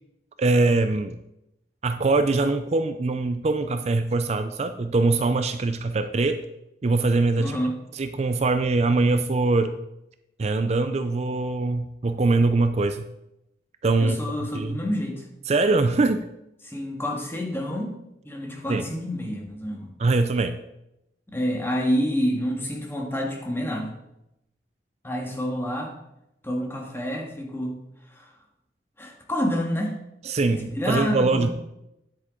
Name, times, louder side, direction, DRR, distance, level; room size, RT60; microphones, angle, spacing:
voice 1, 0.4-1.2 1.8-6.4 6.8-7.6 7.9-9.7 10.4-13.0 13.8-14.8 15.5-16.3 18.7-18.8 20.0-20.6 30.2-31.5, right 3 dB, 40° right, 9 dB, 0.4 m, -23 dB
voice 2, 7.4-7.7 14.0-15.2 16.6-18.0 18.2-19.9 21.3-24.0 25.0-25.9 26.4-27.8 28.1-28.3 29.0-29.9 30.5-31.5, equal, 15° left, 0 dB, 1.6 m, -28 dB
10.0 x 8.2 x 3.7 m, 0.87 s
head